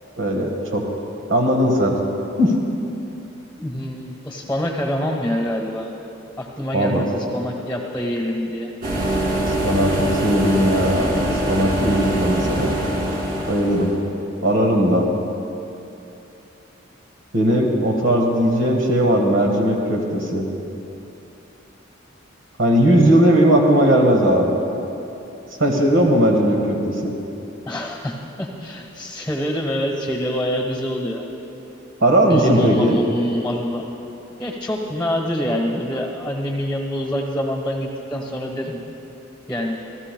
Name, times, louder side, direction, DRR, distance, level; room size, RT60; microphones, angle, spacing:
voice 1, 0.2-0.8 1.3-2.0 2.4-2.6 6.7-7.0 9.6-11.1 11.5-12.8 13.5-13.9 14.4-15.1 17.3-20.5 22.6-24.6 25.6-27.1 32.0-33.0, equal, 90° right, 1 dB, 1.6 m, -18 dB
voice 2, 3.6-5.9 6.4-8.7 27.7-31.2 32.3-33.8 34.4-38.8 39.5-39.8, equal, 5° left, 0 dB, 1.1 m, -26 dB
sound 1, 8.8-14.0, right 1 dB, 50° right, 2.3 m, -23 dB
27.5 x 14.0 x 2.3 m, 2.9 s
head